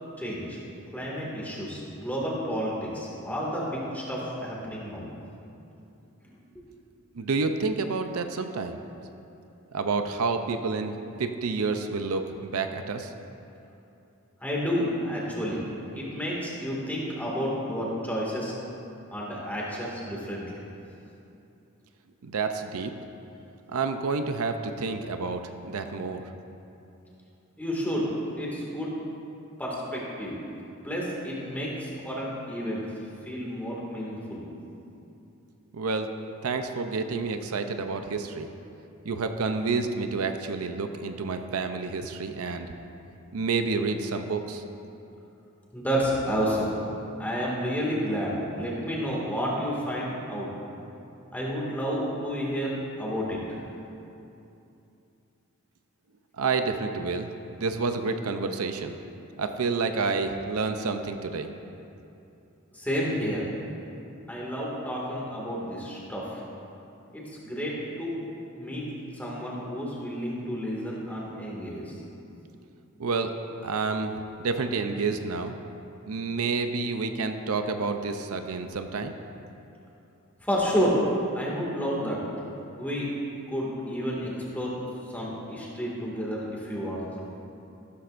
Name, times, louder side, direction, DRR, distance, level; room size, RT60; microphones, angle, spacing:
voice 1, 0.2-0.6 0.9-5.1 6.2-6.6 14.4-15.6 15.9-18.5 19.1-20.5 27.6-28.9 29.6-30.4 30.8-32.8 33.2-34.5 45.7-46.8 47.2-50.5 51.3-53.4 62.7-63.4 64.3-66.4 67.1-68.2 68.5-68.9 69.1-72.0 80.4-81.0 81.3-82.2 82.8-83.1 83.5-84.8 85.1-87.0, equal, 10° left, -5 dB, 2.0 m, -30 dB
voice 2, 7.1-8.8 9.7-13.1 22.2-22.9 23.7-26.3 35.7-36.1 36.4-38.5 39.1-42.7 43.3-44.6 56.4-57.3 57.6-59.0 59.4-61.5 73.0-73.3 73.6-74.1 74.4-75.6 76.1-79.1, right 4 dB, 80° right, 7 dB, 0.6 m, -29 dB
14.5 x 12.5 x 2.6 m, 2.8 s
head